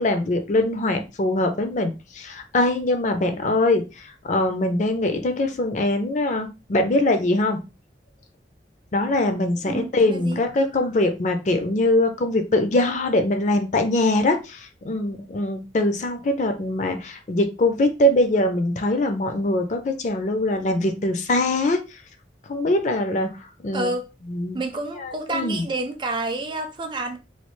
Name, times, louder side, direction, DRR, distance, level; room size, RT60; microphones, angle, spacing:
voice 1, 0.0-7.6 8.9-21.8 22.5-23.3 23.6-23.9 24.3-24.6 25.0-25.7, left 1 dB, 45° left, 0.4 m, -22 dB
voice 2, 9.6-10.4 23.7-24.0 24.5-27.2, right 2 dB, 25° right, 0.4 m, -29 dB
3.2 x 2.3 x 3.0 m
head